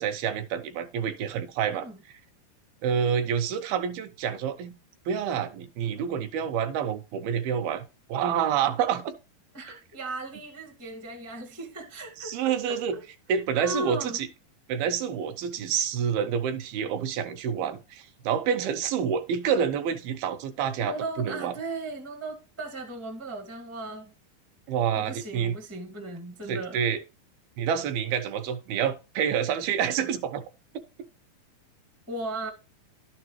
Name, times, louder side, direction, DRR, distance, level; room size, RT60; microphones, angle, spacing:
voice 1, 0.0-1.9 2.8-4.7 5.1-7.8 8.1-9.1 12.2-13.0 13.3-14.3 14.7-21.5 24.7-25.5 26.5-27.0 27.6-30.4, right 8 dB, 80° right, 2.6 m, -28 dB
voice 2, 9.5-13.0 13.5-14.2 20.8-24.1 25.0-26.8 32.1-32.5, right 2 dB, 20° right, 0.4 m, -37 dB
11.5 x 6.8 x 3.1 m
omnidirectional pair, 4.4 m